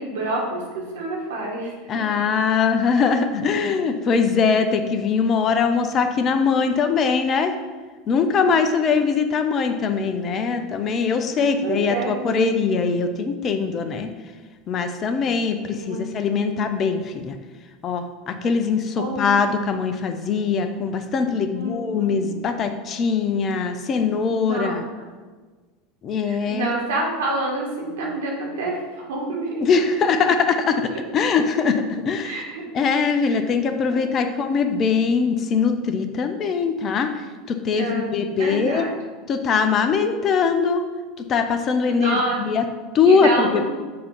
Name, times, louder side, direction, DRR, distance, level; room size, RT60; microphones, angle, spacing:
voice 1, 0.0-1.7 2.1-2.2 11.3-12.5 15.6-16.1 19.0-19.4 21.5-22.3 24.4-24.8 26.3-29.6 29.9-30.2 30.9-31.0 32.2-32.6 33.2-33.4 33.9-34.1 37.7-38.9 41.9-42.4 43.1-43.6, right 2 dB, 80° right, -2 dB, 1.6 m, -28 dB
voice 2, 1.9-7.6 8.1-14.1 14.7-17.4 17.8-24.9 26.0-26.7 29.6-32.4 32.7-38.9 39.3-40.9 41.2-42.6 42.9-43.6, left 5 dB, 40° left, 8 dB, 0.6 m, -22 dB
6.6 x 2.9 x 5.4 m, 1.4 s
hypercardioid pair, 85°, 0 cm